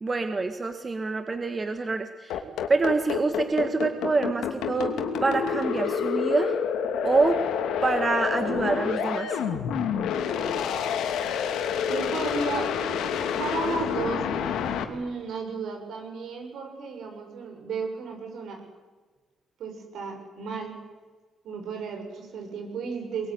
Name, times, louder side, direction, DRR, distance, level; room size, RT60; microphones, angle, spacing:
voice 1, 0.0-2.4 2.7-4.9 5.2-6.5 7.0-7.4 7.8-9.4, right 3 dB, 30° right, 7 dB, 1.8 m, -26 dB
sound 1, 2.3-14.8, left 7 dB, 85° left, 2.8 m, -28 dB
voice 2, 11.9-12.7 13.3-14.3 14.7-18.6 19.6-20.7 21.4-23.3, right 4 dB, 75° right, 4 dB, 7.2 m, -33 dB
23.0 x 21.0 x 9.8 m, 1.3 s
cardioid pair, 90°, 0 cm